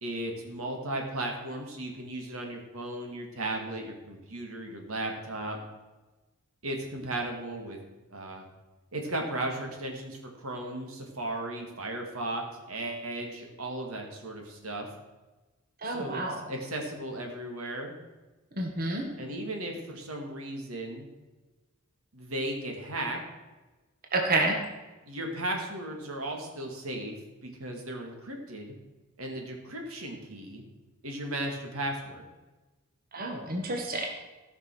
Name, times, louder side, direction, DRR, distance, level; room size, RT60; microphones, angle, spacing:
voice 1, 0.0-5.6 6.6-7.8 8.1-8.4 8.9-14.9 15.8-16.2 16.5-17.9 19.2-21.1 22.1-23.2 25.1-27.1 27.4-28.7 29.2-30.6 31.0-32.2, right 1 dB, 90° right, 2 dB, 2.2 m, -36 dB
voice 2, 15.8-16.4 18.5-19.0 24.1-24.6 33.1-34.1, right 2 dB, 45° right, 2 dB, 1.5 m, -29 dB
14.5 x 5.9 x 6.3 m, 1.2 s
head